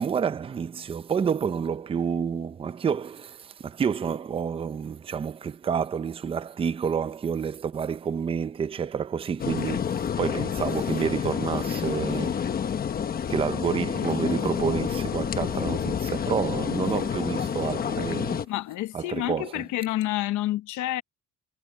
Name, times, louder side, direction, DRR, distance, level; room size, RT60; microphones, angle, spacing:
voice 1, 0.0-12.4 13.3-18.5 18.9-19.7, right 7 dB, 20° right, 0.5 m, -29 dB
sound 1, 9.4-18.5, left 8 dB, 30° left, 1.1 m, -29 dB
voice 2, 18.5-21.0, left 15 dB, 90° left, 1.0 m, -29 dB
cardioid pair, 170°, 29 cm